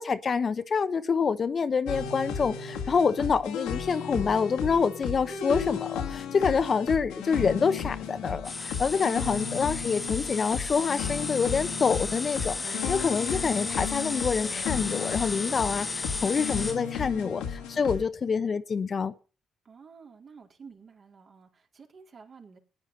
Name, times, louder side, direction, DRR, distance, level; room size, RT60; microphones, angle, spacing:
voice 1, 0.0-17.4 17.7-19.1, left 5 dB, 45° left, 0.9 m, -27 dB
sound 1, 1.9-18.1, left 7 dB, 85° left, 1.9 m, -34 dB
voice 2, 3.0-3.4 9.0-9.4 17.0-18.1 19.6-22.6, right 5 dB, 50° right, 3.9 m, -52 dB
sound 2, 8.4-16.8, left 3 dB, 30° left, 0.6 m, -34 dB
14.5 x 9.7 x 5.4 m
supercardioid pair, 55°, 0 cm